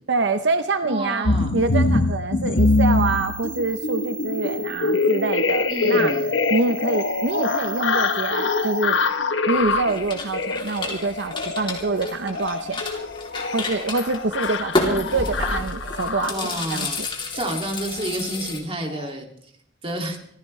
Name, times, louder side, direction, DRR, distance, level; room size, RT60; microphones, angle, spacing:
voice 1, 0.1-6.1 6.5-9.0 9.5-12.8 13.5-17.1, right 3 dB, 70° right, 9 dB, 0.7 m, -26 dB
voice 2, 0.8-1.5 5.7-6.2 16.3-17.1 17.3-19.3 19.8-20.2, right 1 dB, 30° right, 2 dB, 2.4 m, -29 dB
sound 1, 1.3-16.6 17.4-17.6 17.9-18.1 18.4-18.6 18.9-19.1, left 3 dB, 85° left, 1.0 m, -24 dB
sound 2, 2.6-9.1, right 4 dB, 5° right, 2.0 m, -37 dB
sound 3, 9.6-18.6, left 2 dB, 25° left, 3.0 m, -30 dB
26.5 x 15.0 x 3.2 m, 0.68 s
head